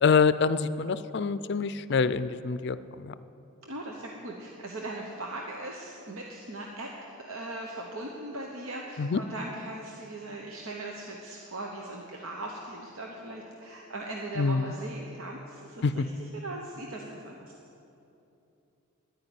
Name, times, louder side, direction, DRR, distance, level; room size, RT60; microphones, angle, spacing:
voice 1, 0.0-3.1 9.0-9.2 14.4-14.7 15.8-15.9, left 5 dB, 55° left, 14 dB, 0.4 m, -25 dB
voice 2, 3.6-16.0 16.3-17.5, right 2 dB, 75° right, 0 dB, 1.1 m, -39 dB
10.5 x 9.6 x 9.2 m, 2.8 s
head